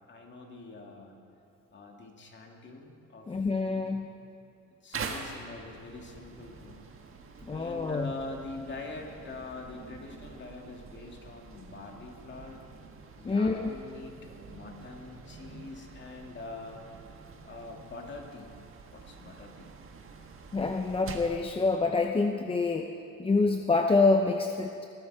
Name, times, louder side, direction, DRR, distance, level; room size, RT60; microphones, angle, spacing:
voice 1, 0.1-1.2 1.7-3.3 3.6-3.9 4.8-6.8 7.5-12.6 13.2-14.2 14.5-16.8 17.4-18.6 18.9-19.7, left 3 dB, 35° left, 1 dB, 2.3 m, -44 dB
voice 2, 3.3-4.1 7.4-8.1 13.2-13.7 20.5-22.9 23.2-24.9, left 3 dB, 15° left, 4 dB, 0.6 m, -26 dB
sound 1, 4.9-21.4, right 5 dB, 40° right, 1.6 m, -46 dB
20.5 x 14.5 x 4.9 m, 2.7 s
cardioid pair, 135°, 32 cm